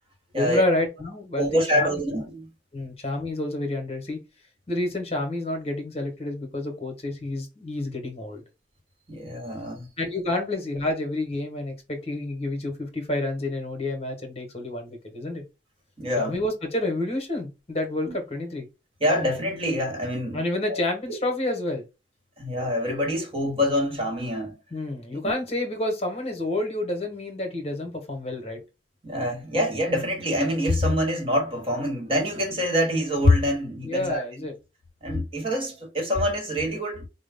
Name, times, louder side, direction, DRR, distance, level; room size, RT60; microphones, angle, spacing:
voice 1, 0.4-1.9 2.7-4.2 4.7-8.4 10.0-15.4 16.2-18.7 20.3-21.9 24.7-28.6 33.8-34.5, left 1 dB, 35° left, 1.2 m, -29 dB
voice 2, 1.4-2.5 9.1-9.9 16.0-16.4 18.1-18.2 19.0-20.4 20.7-20.8 21.1-21.2 22.4-24.5 29.0-34.2 35.0-37.1, left 1 dB, 30° right, 1.3 m, -25 dB
4.8 x 2.1 x 3.4 m
head